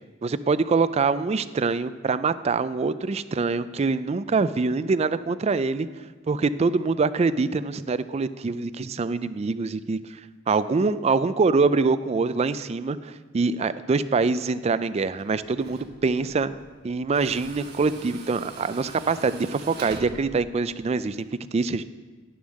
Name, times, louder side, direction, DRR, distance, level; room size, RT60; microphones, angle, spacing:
voice 1, 0.2-5.9 6.3-10.0 10.5-16.5 16.8-21.2 21.5-21.8, right 4 dB, 30° right, 14 dB, 0.4 m, -24 dB
Tools, 15.0-21.2, right 2 dB, 55° right, 1.4 m, -43 dB
11.0 x 7.0 x 6.4 m, 1.3 s
head